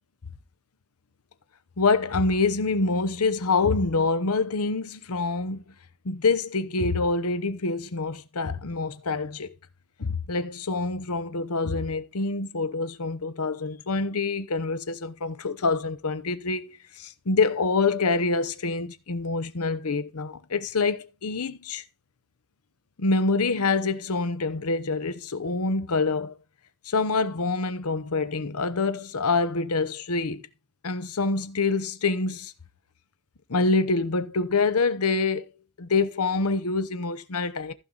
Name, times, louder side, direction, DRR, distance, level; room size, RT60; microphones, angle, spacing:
voice 1, 1.8-5.6 6.0-9.5 10.0-21.8 23.0-26.4 26.8-30.4 30.8-32.5 33.5-35.5 35.8-37.7, left 3 dB, 80° left, 0.9 m, -26 dB
15.0 x 5.5 x 3.9 m
head